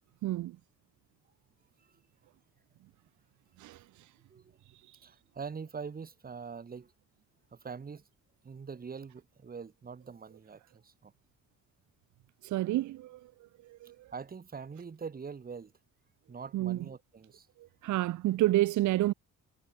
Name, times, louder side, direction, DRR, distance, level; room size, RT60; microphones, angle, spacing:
voice 1, 0.2-0.5 3.6-3.8 12.4-13.2 13.8-13.9 16.5-16.8 17.8-19.1, right 16 dB, 75° right, 0.7 m, -28 dB
voice 2, 5.0-6.9 7.5-8.1 8.4-11.1 14.1-15.7 16.3-17.5, right 5 dB, 30° right, 1.5 m, -43 dB
cardioid pair, 90°, 30 cm